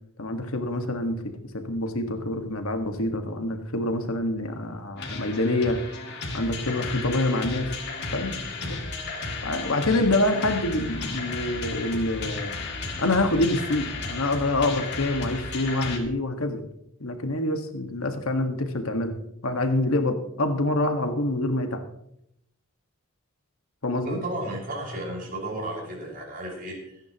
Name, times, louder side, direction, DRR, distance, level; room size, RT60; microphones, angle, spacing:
voice 1, 0.2-5.8 6.3-7.7 8.1-8.8 9.4-12.5 13.0-16.7 17.0-19.1 19.4-21.8 23.8-24.2, left 2 dB, 90° left, 5 dB, 1.7 m, -26 dB
sound 1, 5.0-16.0, left 3 dB, 55° left, 2.5 m, -34 dB
voice 2, 24.0-27.0, right 1 dB, 45° right, -2 dB, 5.6 m, -34 dB
26.0 x 10.5 x 3.0 m, 0.77 s
head